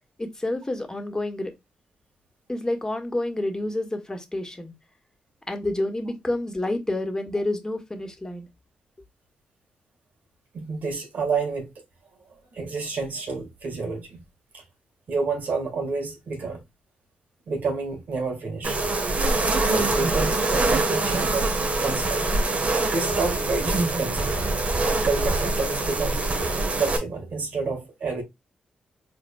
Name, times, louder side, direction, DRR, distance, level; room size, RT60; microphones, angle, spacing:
voice 1, 0.2-1.5 2.5-4.7 5.5-8.5, left 1 dB, 20° left, 1.7 m, -29 dB
voice 2, 10.5-11.7 12.5-14.2 14.5-14.6 15.1-16.6 17.5-18.8 19.7-22.3 22.9-24.3 25.0-26.3 26.8-28.2, right 4 dB, 70° right, 1.8 m, -29 dB
sound 1, 18.6-27.0, right 2 dB, 50° right, 1.3 m, -24 dB
4.9 x 3.8 x 2.3 m
supercardioid pair, 45°, 3 cm